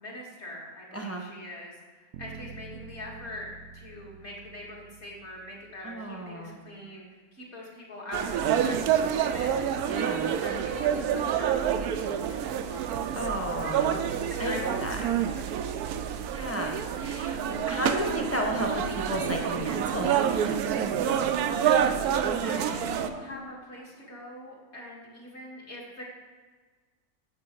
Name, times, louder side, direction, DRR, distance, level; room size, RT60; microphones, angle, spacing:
voice 1, 0.0-3.5 3.7-9.5 10.3-12.9 14.3-15.8 21.6-22.1 22.4-26.0, left 1 dB, 45° left, -3 dB, 2.3 m, -43 dB
voice 2, 0.9-1.2 5.8-6.6 9.8-10.4 13.1-14.0 14.4-15.0 16.3-20.5, equal, 10° left, 1 dB, 1.2 m, -33 dB
sound 1, 2.1-6.2, right 5 dB, 70° right, 0.9 m, -48 dB
sound 2, 8.1-23.1, right 9 dB, 90° right, 1.1 m, -28 dB
sound 3, 18.1-24.7, left 6 dB, 80° left, 0.4 m, -45 dB
9.4 x 7.5 x 4.6 m, 1.4 s
omnidirectional pair, 1.6 m